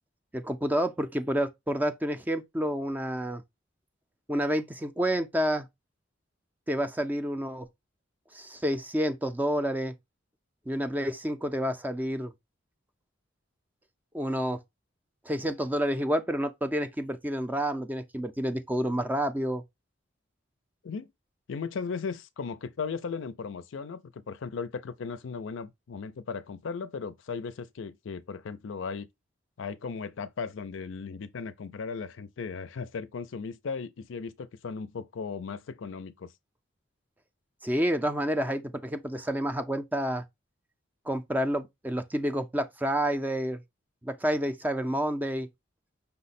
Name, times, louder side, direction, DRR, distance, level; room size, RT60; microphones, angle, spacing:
voice 1, 0.3-3.4 4.3-5.7 6.7-7.7 8.3-9.9 10.7-12.3 14.1-14.6 15.3-19.6 37.6-40.2 41.1-43.6 44.0-45.5, equal, 10° right, 0.4 m, -29 dB
voice 2, 21.5-29.1 29.6-36.3, left 5 dB, 70° left, 0.4 m, -36 dB
5.5 x 2.1 x 4.0 m
head